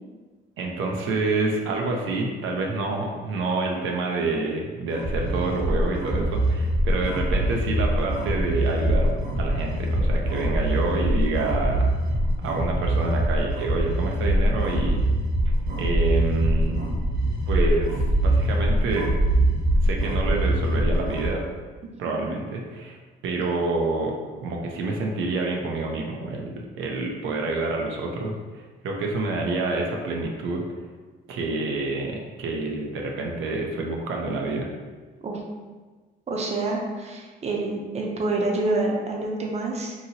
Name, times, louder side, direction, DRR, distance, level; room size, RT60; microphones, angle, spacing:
voice 1, 0.6-9.1 9.4-11.9 12.4-15.0 15.8-16.8 17.5-19.1 19.8-21.4 22.0-23.0 23.2-24.1 24.4-30.6 31.3-34.7, right 3 dB, 80° right, 0 dB, 0.5 m, -27 dB
sound 1, 4.9-21.3, right 1 dB, 50° right, 1.0 m, -23 dB
voice 2, 22.1-22.4 35.2-35.4 36.3-39.9, right 2 dB, 35° right, 0 dB, 0.5 m, -27 dB
2.8 x 2.7 x 2.7 m, 1.4 s
cardioid pair, 90°, 20 cm